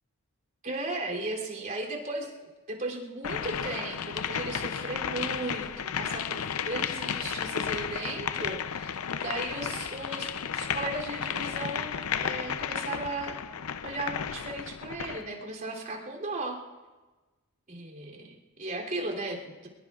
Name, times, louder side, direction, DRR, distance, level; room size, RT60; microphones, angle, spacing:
voice 1, 0.6-8.9 9.2-13.4 13.8-16.6 17.7-19.7, right 2 dB, 40° right, -2 dB, 3.0 m, -36 dB
sound 1, 3.2-15.3, left 7 dB, 80° left, 0.6 m, -33 dB
23.5 x 22.0 x 2.4 m, 1.2 s
head